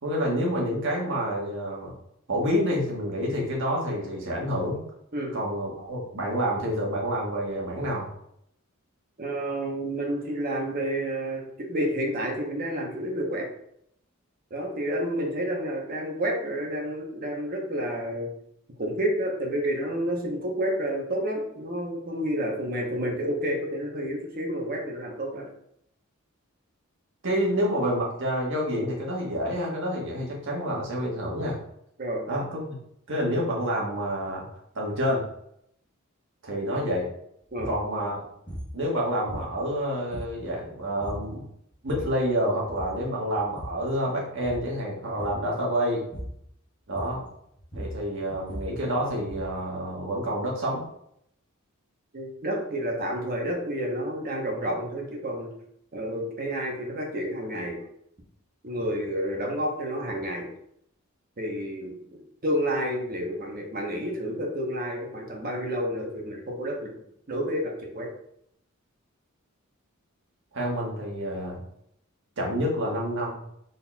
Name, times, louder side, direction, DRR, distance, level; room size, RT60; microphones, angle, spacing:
voice 1, 0.0-1.9 2.3-4.8 5.3-8.1 27.2-31.6 32.3-32.8 33.1-34.4 34.7-35.3 36.4-37.1 37.7-38.2 38.7-41.4 41.8-46.0 46.9-47.2 47.7-50.8 70.5-71.6 72.4-73.4, equal, 60° right, -2 dB, 1.3 m, -28 dB
voice 2, 9.2-13.5 14.5-18.3 18.8-25.5 32.0-32.2 37.5-37.7 52.1-55.5 55.9-57.8 58.6-60.5 61.4-67.0 67.3-68.1, equal, 45° right, 0 dB, 0.9 m, -30 dB
sound 1, 37.5-37.8 38.5-38.8 39.3-39.8 40.1-40.6 41.0-41.3 41.7-42.2 42.7-43.0 43.3-43.9 44.3-44.7 45.2-45.5 46.1-46.5 46.9-47.3 47.6-49.6, equal, 25° left, 1.1 m, -39 dB
4.1 x 3.9 x 2.3 m, 0.71 s
head